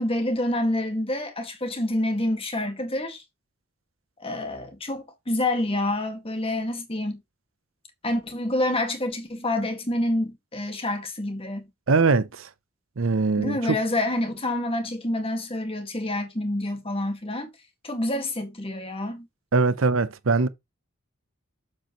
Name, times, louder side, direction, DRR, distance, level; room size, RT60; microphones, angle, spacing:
voice 1, 0.0-3.2 4.2-7.2 8.0-11.7 13.4-17.5 17.8-19.3, left 1 dB, 25° left, 1.9 m, -27 dB
voice 2, 11.9-12.5 13.0-13.6 19.5-20.5, right 4 dB, 65° right, 0.7 m, -21 dB
7.8 x 7.3 x 3.1 m
head